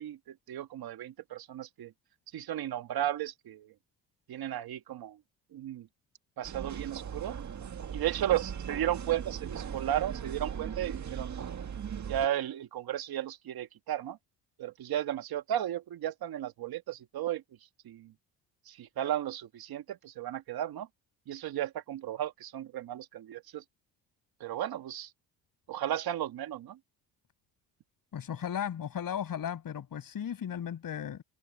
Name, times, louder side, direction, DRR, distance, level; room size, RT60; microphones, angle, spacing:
voice 1, 0.0-1.9 2.3-3.7 4.3-5.2 5.5-5.9 6.4-7.4 7.9-11.3 12.1-14.2 14.6-17.4 17.8-18.1 18.7-20.9 21.3-23.6 24.4-25.1 25.7-26.8, right 12 dB, 70° right, 1.9 m, -34 dB
sound 1, 6.4-12.3, right 8 dB, 45° right, 1.7 m, -39 dB
voice 2, 28.1-31.2, left 9 dB, 60° left, 6.5 m, -36 dB
cardioid pair, 75°, 38 cm